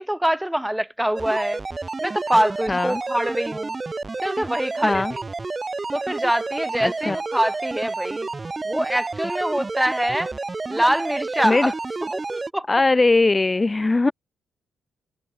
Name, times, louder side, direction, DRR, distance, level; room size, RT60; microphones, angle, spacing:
voice 1, 0.0-1.6 2.0-3.8 4.2-5.2 5.9-8.3 8.6-10.3 10.7-11.7 12.1-12.7, right 1 dB, 5° right, 3.1 m, -24 dB
sound 1, 1.2-12.5, right 3 dB, 30° right, 3.9 m, -30 dB
voice 2, 2.7-3.0 4.8-5.1 6.8-7.2 11.4-11.7 12.7-14.1, left 3 dB, 25° left, 1.2 m, -20 dB
supercardioid pair, 55°, 0 cm